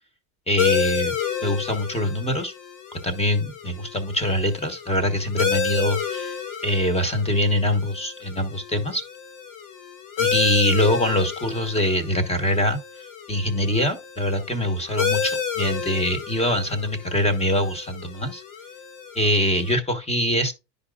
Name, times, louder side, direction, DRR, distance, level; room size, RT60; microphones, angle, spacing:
voice 1, 0.5-1.1 1.4-2.5 3.0-6.4 6.6-9.0 10.2-12.8 13.3-18.4 19.1-20.5, left 1 dB, 10° left, 1.2 m, -23 dB
sound 1, 0.6-19.7, left 7 dB, 40° left, 1.3 m, -30 dB
10.0 x 5.2 x 2.4 m
supercardioid pair, 115°, 50 cm